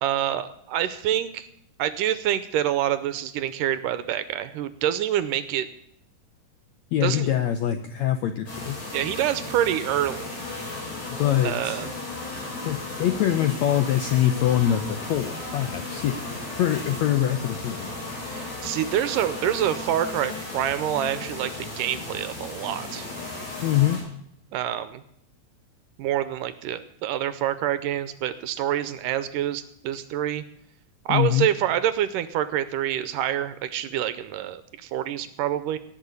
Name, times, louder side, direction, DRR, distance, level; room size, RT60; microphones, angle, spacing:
voice 1, 0.0-1.5 1.8-5.7 7.0-7.3 8.9-10.4 11.4-11.9 18.2-23.1 24.5-25.0 26.0-30.4 31.1-35.8, right 11 dB, 75° right, 13 dB, 2.1 m, -27 dB
voice 2, 6.9-8.8 11.2-11.9 12.6-16.2 16.6-17.9 23.6-24.0 31.1-31.5, left 11 dB, 80° left, 8 dB, 1.6 m, -24 dB
sound 1, 8.5-24.0, left 2 dB, 50° left, 8.7 m, -35 dB
17.5 x 6.7 x 9.6 m, 0.72 s
omnidirectional pair, 4.1 m